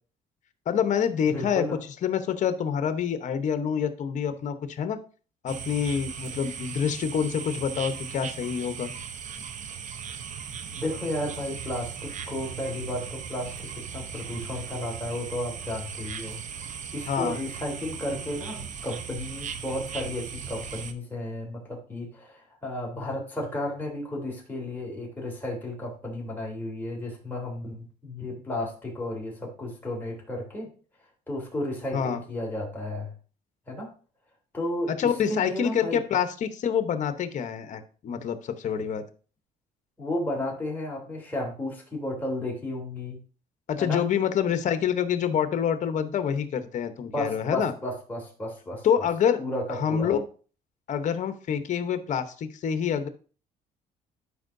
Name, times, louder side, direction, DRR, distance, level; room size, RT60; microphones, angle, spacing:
voice 1, 0.7-1.6 2.0-5.0 5.4-8.9 17.1-17.4 31.9-32.2 34.9-39.0 43.7-47.7 48.8-49.4 49.7-50.2 50.9-53.1, left 8 dB, 55° left, 9 dB, 0.9 m, -27 dB
voice 2, 1.3-1.8 10.7-30.7 31.3-33.1 33.7-33.9 34.5-36.0 40.0-43.2 43.8-44.0 47.1-49.1 49.4-50.1, left 1 dB, 10° left, -3 dB, 3.2 m, -33 dB
Bali night loud insects geckos frogs, 5.5-20.9, right 7 dB, 55° right, 0.8 m, -38 dB
11.5 x 5.4 x 2.6 m, 0.40 s
cardioid pair, 120°, 15 cm